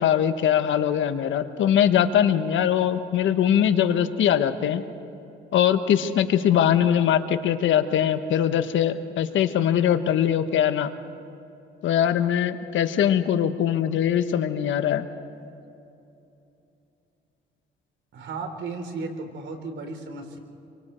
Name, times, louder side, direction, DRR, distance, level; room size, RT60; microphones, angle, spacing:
voice 1, 0.0-4.8 5.5-10.9 11.8-15.0, left 9 dB, 75° left, 10 dB, 1.2 m, -22 dB
voice 2, 18.1-20.4, right 3 dB, 70° right, 6 dB, 3.3 m, -34 dB
27.0 x 24.0 x 4.4 m, 2.8 s
cardioid pair, 90°, 20 cm